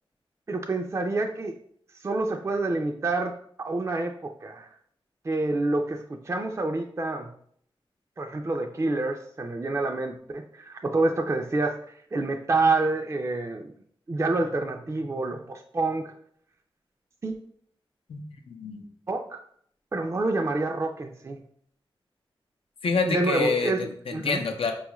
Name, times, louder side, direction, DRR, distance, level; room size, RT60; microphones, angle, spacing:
voice 1, 0.5-1.5 2.0-4.7 5.2-7.3 8.2-11.8 12.1-13.7 14.1-16.1 17.2-17.3 19.1-19.4 19.9-21.4 23.0-24.4, right 2 dB, 30° right, 4 dB, 0.3 m, -27 dB
voice 2, 18.1-18.8 22.8-24.7, left 4 dB, 90° left, 4 dB, 0.5 m, -27 dB
4.7 x 2.3 x 3.0 m, 0.64 s
wide cardioid pair, 70°, 9 cm